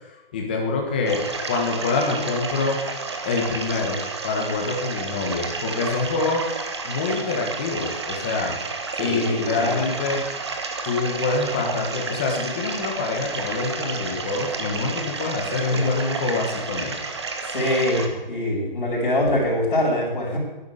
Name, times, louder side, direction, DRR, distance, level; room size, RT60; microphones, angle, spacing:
voice 1, 0.3-2.8 3.2-4.0 4.2-6.4 6.8-8.6 9.0-10.2 10.8-17.0, left 3 dB, 10° left, 1 dB, 1.2 m, -25 dB
sound 1, 1.1-18.1, right 4 dB, 30° right, 1.3 m, -31 dB
voice 2, 9.0-9.8 15.7-15.8 17.5-20.4, left 1 dB, 50° left, -10 dB, 6.3 m, -24 dB
12.0 x 11.0 x 8.5 m, 1.1 s
hypercardioid pair, 180°, 29 cm